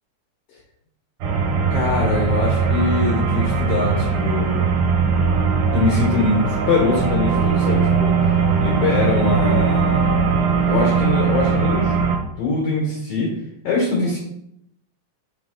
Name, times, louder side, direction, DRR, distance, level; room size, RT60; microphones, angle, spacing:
sound 1, 1.2-12.2, right 5 dB, 70° right, 2.4 m, -20 dB
voice 1, 1.7-4.6 5.7-8.2 8.6-10.3 10.7-11.9 12.4-13.3 13.6-14.2, left 3 dB, 65° left, -2 dB, 1.6 m, -22 dB
7.8 x 3.5 x 3.6 m, 0.77 s
omnidirectional pair, 4.0 m